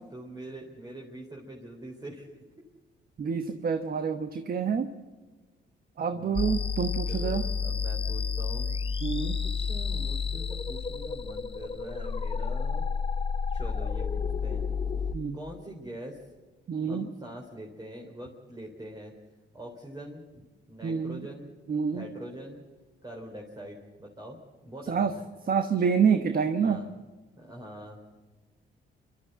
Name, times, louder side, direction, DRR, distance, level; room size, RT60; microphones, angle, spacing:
voice 1, 0.1-2.3 6.1-6.6 7.1-12.9 13.5-14.7 15.3-16.2 16.9-19.1 19.5-20.4 20.7-21.6 21.9-22.6 23.0-24.4 24.6-25.2 26.6-26.9 27.4-28.0, right 1 dB, 20° right, -2 dB, 3.8 m, -44 dB
voice 2, 3.2-4.9 6.0-7.5 9.0-9.4 15.1-15.4 16.7-17.1 20.8-21.3 21.7-22.1 24.9-25.1 25.5-26.8, right 6 dB, 50° right, 8 dB, 1.2 m, -27 dB
sound 1, 6.4-15.1, left 5 dB, 25° left, 0.8 m, -30 dB
27.5 x 13.0 x 8.0 m, 1.3 s
cardioid pair, 90°, 20 cm